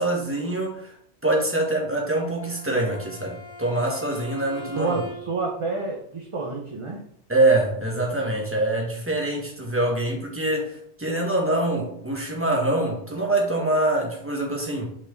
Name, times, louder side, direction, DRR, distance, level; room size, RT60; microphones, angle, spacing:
voice 1, 0.0-5.0 7.3-14.9, right 2 dB, 10° right, -2 dB, 1.5 m, -24 dB
Bowed string instrument, 2.2-5.5, left 1 dB, 20° left, 2.4 m, -41 dB
voice 2, 4.7-7.0, right 3 dB, 30° right, 0 dB, 0.7 m, -29 dB
5.5 x 4.5 x 3.9 m, 0.67 s
omnidirectional pair, 1.1 m